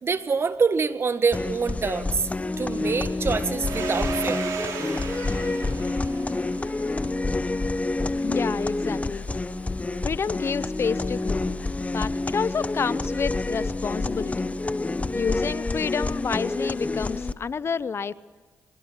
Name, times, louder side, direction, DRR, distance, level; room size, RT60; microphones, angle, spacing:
voice 1, 0.0-2.3 2.6-4.4, right 5 dB, 50° right, 11 dB, 1.7 m, -25 dB
sound 1, 1.3-17.3, left 2 dB, 25° left, 1.2 m, -28 dB
Domestic sounds home sounds, 3.6-8.0, right 6 dB, 80° right, 3.6 m, -35 dB
voice 2, 8.2-9.2 10.0-11.5 11.9-14.5 15.1-18.1, left 6 dB, 50° left, 18 dB, 0.8 m, -29 dB
24.5 x 21.5 x 7.4 m, 1.4 s
supercardioid pair, 55°, 6 cm